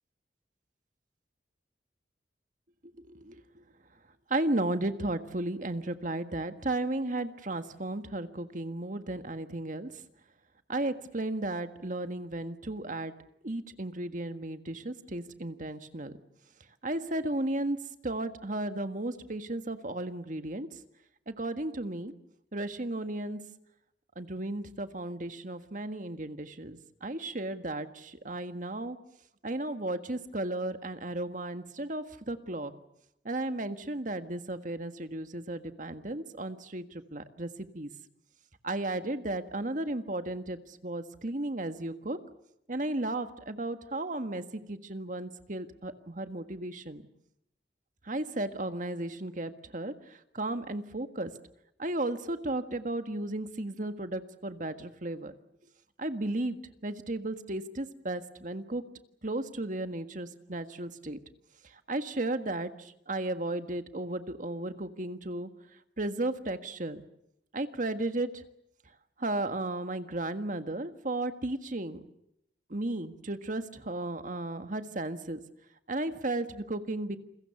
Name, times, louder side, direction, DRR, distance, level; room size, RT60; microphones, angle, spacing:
voice 1, 3.0-3.6 4.3-9.9 10.7-13.2 13.4-16.1 16.8-17.8 18.0-20.7 21.3-22.1 22.5-23.4 24.1-29.0 29.4-32.7 33.2-37.5 37.7-37.9 38.6-42.2 42.7-47.0 48.0-51.3 51.8-55.3 56.0-58.8 59.2-61.2 61.9-65.5 66.0-67.0 67.5-68.3 69.2-72.0 72.7-75.4 75.9-77.2, right 2 dB, 45° right, 9 dB, 1.6 m, -34 dB
29.0 x 22.0 x 7.1 m, 0.78 s
head